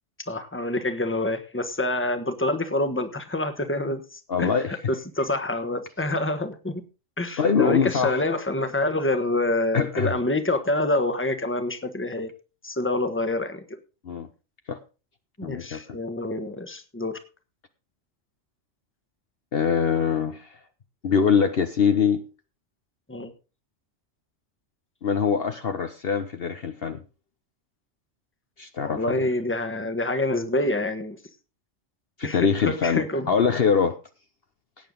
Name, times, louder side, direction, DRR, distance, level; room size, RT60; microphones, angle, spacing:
voice 1, 0.3-4.5 4.9-6.8 7.2-12.3 12.6-13.6 15.4-17.2 23.1-23.3 28.8-31.2 32.2-33.3, left 2 dB, 10° left, 8 dB, 1.3 m, -27 dB
voice 2, 4.3-4.8 7.4-8.2 9.7-10.1 14.0-14.3 14.7-14.8 15.4-16.0 19.5-20.6 21.0-22.2 25.0-27.0 28.6-29.2 32.2-34.0, left 6 dB, 55° left, 8 dB, 1.1 m, -23 dB
17.0 x 9.0 x 3.9 m, 0.32 s
omnidirectional pair, 1.3 m